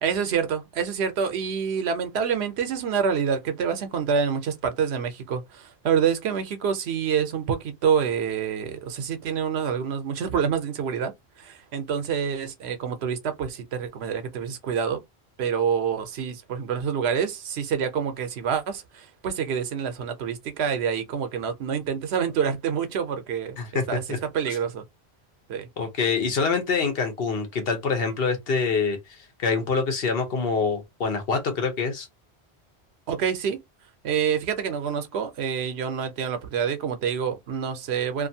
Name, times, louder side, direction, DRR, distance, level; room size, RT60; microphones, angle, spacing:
voice 1, 0.0-11.1 11.4-15.0 15.4-23.6 23.9-24.8 25.5-25.7 33.1-33.6 34.0-38.3, right 7 dB, 80° right, 0.9 m, -27 dB
voice 2, 23.6-24.2 24.5-24.6 25.8-32.1, left 5 dB, 65° left, 1.0 m, -26 dB
2.5 x 2.5 x 2.7 m
omnidirectional pair, 1.1 m